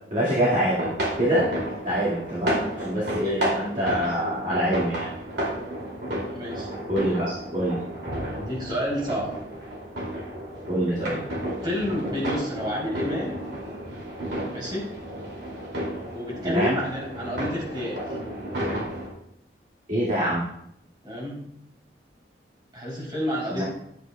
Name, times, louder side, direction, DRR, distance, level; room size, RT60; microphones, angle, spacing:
voice 1, 0.1-1.5 1.8-5.1 6.9-7.8 10.7-11.2 16.4-16.8 19.9-20.4 23.5-23.6, equal, 45° right, -9 dB, 2.0 m, -25 dB
sound 1, 0.7-19.1, right 1 dB, 75° right, 2.6 m, -32 dB
voice 2, 6.3-6.7 8.3-9.3 10.9-11.2 11.6-13.5 14.5-14.9 16.1-18.2 21.0-21.4 22.7-23.6, equal, 25° right, -5 dB, 3.3 m, -30 dB
11.0 x 8.0 x 2.3 m, 0.75 s
head